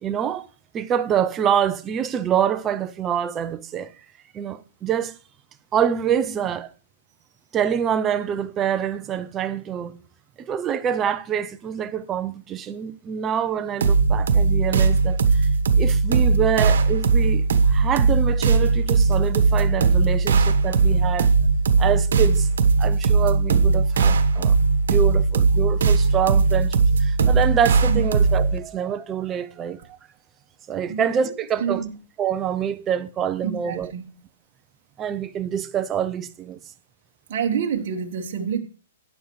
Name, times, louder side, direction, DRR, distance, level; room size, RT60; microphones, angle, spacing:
voice 1, 0.0-0.5 0.7-3.9 4.3-5.1 5.7-6.7 7.5-9.9 10.4-15.5 15.8-21.3 21.8-22.5 22.8-24.6 24.9-29.8 30.7-31.8 32.2-33.9 35.0-36.6, right 8 dB, 15° right, 0.5 m, -26 dB
sound 1, 13.8-28.6, right 4 dB, 75° right, 1.2 m, -19 dB
voice 2, 30.9-31.3 31.6-31.9 33.4-34.0 37.3-38.6, right 7 dB, 45° right, 1.2 m, -27 dB
12.0 x 9.4 x 3.1 m
hypercardioid pair, 165°, 0 cm